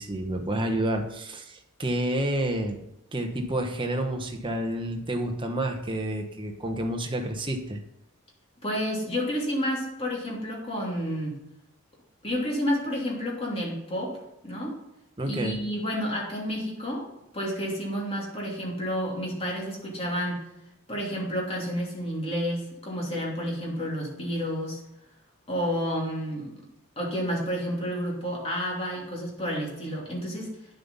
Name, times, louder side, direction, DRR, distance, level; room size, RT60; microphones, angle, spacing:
voice 1, 0.0-2.8 3.1-7.8 15.2-15.6, right 1 dB, 20° right, 4 dB, 1.1 m, -29 dB
voice 2, 8.6-11.4 12.2-14.2 14.4-14.8 15.3-20.4 20.9-24.8 25.5-26.5 27.0-30.5, equal, 25° left, -3 dB, 2.9 m, -30 dB
9.6 x 7.7 x 5.5 m, 0.84 s
head